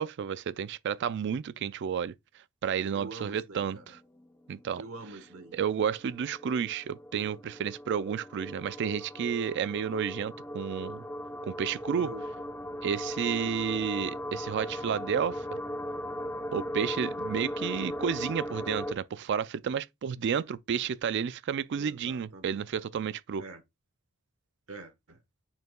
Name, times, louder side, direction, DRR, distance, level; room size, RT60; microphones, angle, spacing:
voice 1, 0.0-2.1 2.6-3.8 4.5-4.8 5.5-11.0 11.5-12.1 12.8-15.4 16.5-23.4, right 7 dB, 55° right, 0.3 m, -31 dB
voice 2, 2.9-3.8 4.8-5.6 11.9-12.2 13.3-13.6 21.7-22.6 23.4-23.6 24.7-25.2, right 3 dB, 70° right, 1.2 m, -45 dB
sound 1, 3.7-4.2 4.5-4.6 4.8-18.9, equal, 10° left, 0.7 m, -38 dB
9.3 x 4.4 x 2.3 m
head